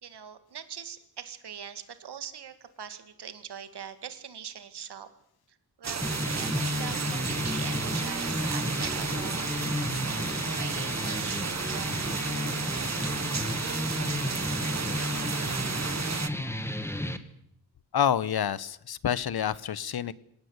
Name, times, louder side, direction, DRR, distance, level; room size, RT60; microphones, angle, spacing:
voice 1, 0.0-5.1 5.5-9.5 10.5-12.2, right 8 dB, 90° right, 11 dB, 2.2 m, -42 dB
sound 1, 5.8-16.3, right 6 dB, 45° right, 1.2 m, -33 dB
sound 2, 6.0-17.2, left 1 dB, 5° left, 1.8 m, -32 dB
voice 2, 17.9-20.1, left 9 dB, 70° left, 18 dB, 1.1 m, -28 dB
25.5 x 18.0 x 8.1 m, 0.72 s
wide cardioid pair, 105°, 39 cm